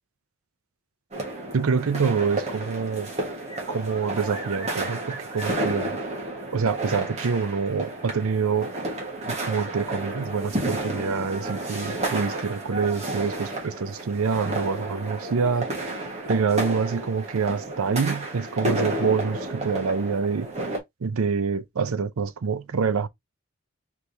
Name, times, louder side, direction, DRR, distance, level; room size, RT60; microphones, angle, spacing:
sound 1, 1.1-20.8, right 2 dB, 30° right, 1.4 m, -31 dB
voice 1, 1.5-3.1 3.7-5.9 6.5-8.7 9.3-15.7 16.3-20.5 21.0-23.1, right 5 dB, 85° right, 0.5 m, -26 dB
4.6 x 3.3 x 2.7 m
head